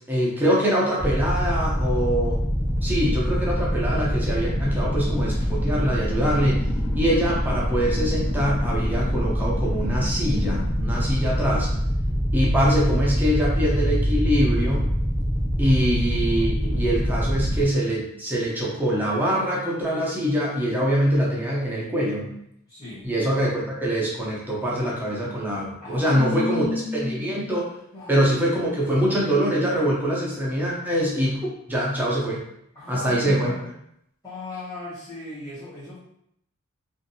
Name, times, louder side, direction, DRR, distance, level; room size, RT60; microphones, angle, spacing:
voice 1, 0.1-2.4 2.8-6.6 7.0-11.7 12.3-14.9 15.6-22.4 23.0-26.6 26.9-27.6 28.1-32.4 32.9-33.5, equal, 10° right, -5 dB, 0.6 m, -24 dB
sound 1, 1.0-17.6, equal, 55° left, 1.0 m, -24 dB
voice 2, 22.7-23.1 25.8-27.3 27.9-28.3 32.7-33.7 34.2-36.0, left 2 dB, 20° left, -13 dB, 1.0 m, -33 dB
2.6 x 2.5 x 2.6 m, 0.75 s
head